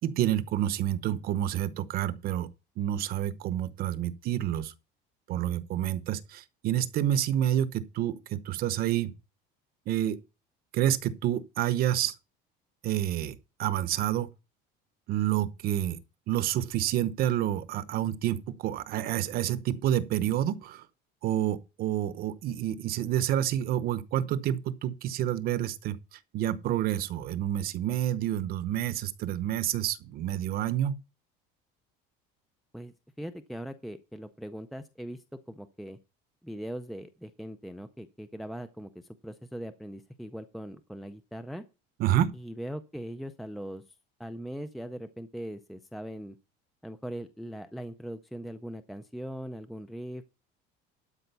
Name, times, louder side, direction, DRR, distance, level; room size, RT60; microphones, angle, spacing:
voice 1, 0.0-2.5 2.8-4.7 5.3-9.1 9.9-10.2 10.7-12.1 12.8-14.3 15.1-16.0 16.3-20.8 21.2-31.0 42.0-42.3, right 11 dB, 45° right, 0.9 m, -29 dB
voice 2, 32.7-36.0 36.4-41.6 42.3-43.8 44.2-46.4 46.8-50.2, equal, ahead, 0.4 m, -40 dB
12.5 x 5.0 x 6.9 m
cardioid pair, 160°, 21 cm